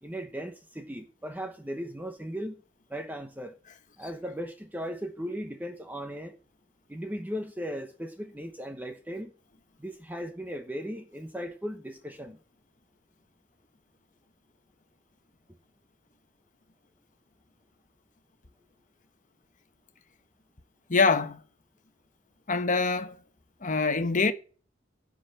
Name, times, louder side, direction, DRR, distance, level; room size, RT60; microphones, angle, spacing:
voice 1, 0.0-2.6 2.9-3.5 4.0-6.3 6.9-9.3 9.8-12.4, equal, 10° right, 1.0 m, -37 dB
voice 2, 20.9-21.4 22.5-23.2 23.6-24.3, left 4 dB, 40° left, 1.2 m, -24 dB
11.0 x 6.4 x 7.7 m
head